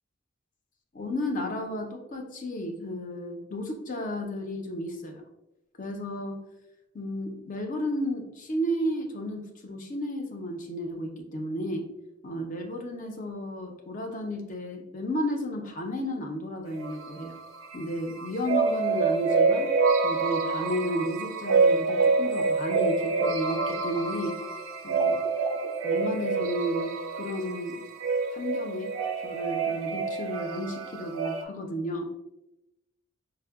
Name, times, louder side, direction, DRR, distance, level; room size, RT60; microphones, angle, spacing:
voice 1, 0.9-5.2 5.8-6.4 6.9-11.9 12.2-17.3 17.7-19.7 20.0-24.4 24.8-25.2 25.8-27.8 28.3-28.9 29.2-32.1, equal, 40° left, 4 dB, 0.4 m, -33 dB
sound 1, 16.7-17.8 18.2-31.4, right 4 dB, 75° right, 0.4 m, -27 dB
4.3 x 2.0 x 2.3 m, 0.90 s
head